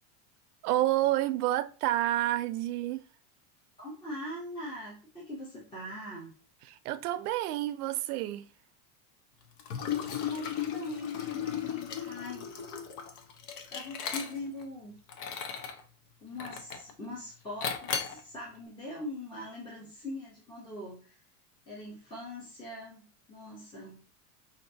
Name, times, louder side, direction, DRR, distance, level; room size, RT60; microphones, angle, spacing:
voice 1, 0.6-3.0 6.7-8.5, right 15 dB, 75° right, 0.6 m, -29 dB
voice 2, 3.8-6.3 10.2-12.5 13.7-15.0 16.2-21.2 21.7-24.1, left 1 dB, 10° left, 0.8 m, -42 dB
Liquid, 9.6-14.6 15.1-15.8 16.4-16.9 17.6-18.2, left 8 dB, 55° left, 0.8 m, -35 dB
5.2 x 2.7 x 2.6 m
supercardioid pair, 155°, 46 cm